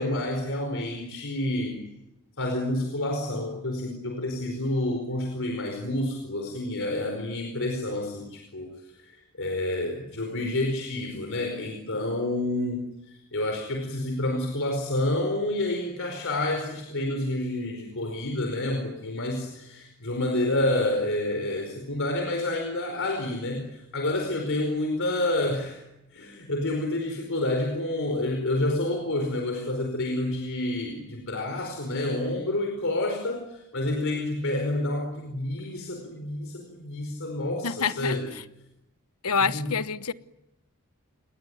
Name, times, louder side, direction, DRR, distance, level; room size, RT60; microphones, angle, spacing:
voice 1, 0.0-1.9 2.4-9.1 9.4-25.8 26.1-38.3 39.4-39.7, left 1 dB, 65° left, 4.9 m, -29 dB
voice 2, 37.6-38.2 39.2-40.1, left 5 dB, 80° left, 1.1 m, -26 dB
27.5 x 22.0 x 9.5 m
head